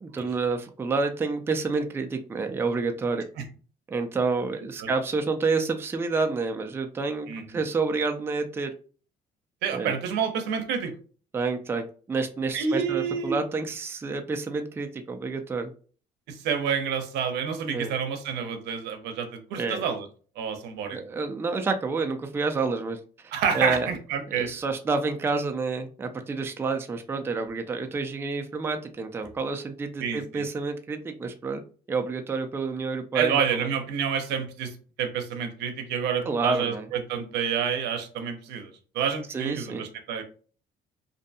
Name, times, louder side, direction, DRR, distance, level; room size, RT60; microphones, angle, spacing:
voice 1, 0.0-3.2 3.9-8.7 9.7-9.9 11.3-15.7 17.7-17.9 19.6-19.8 20.9-23.9 24.3-31.6 31.9-33.7 36.3-36.9 39.3-39.9, right 4 dB, 15° right, 6 dB, 0.3 m, -29 dB
voice 2, 9.6-10.9 12.5-13.4 16.3-20.1 20.4-21.0 23.3-24.5 30.0-30.4 33.1-40.2, right 7 dB, 85° right, 6 dB, 0.6 m, -29 dB
2.6 x 2.2 x 2.6 m, 0.40 s
cardioid pair, 110°, 17 cm